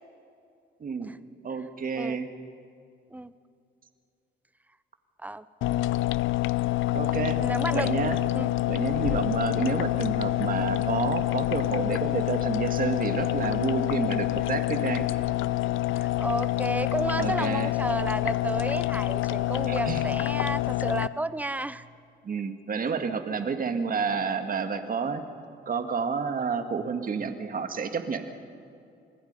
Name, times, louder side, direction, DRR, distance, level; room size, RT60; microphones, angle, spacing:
voice 1, 0.8-1.2 1.4-2.3 6.9-7.4 7.7-8.2 8.7-15.1 17.2-17.7 19.7-20.0 22.2-25.2 25.7-28.3, right 5 dB, 45° right, 7 dB, 1.9 m, -30 dB
sound 1, 5.6-21.1, left 16 dB, 85° left, 0.6 m, -27 dB
voice 2, 7.4-7.9 8.3-8.5 9.1-9.2 15.9-21.8 23.4-23.5, right 2 dB, 10° right, 15 dB, 0.8 m, -32 dB
27.5 x 20.5 x 5.5 m, 2.6 s
cardioid pair, 90°, 20 cm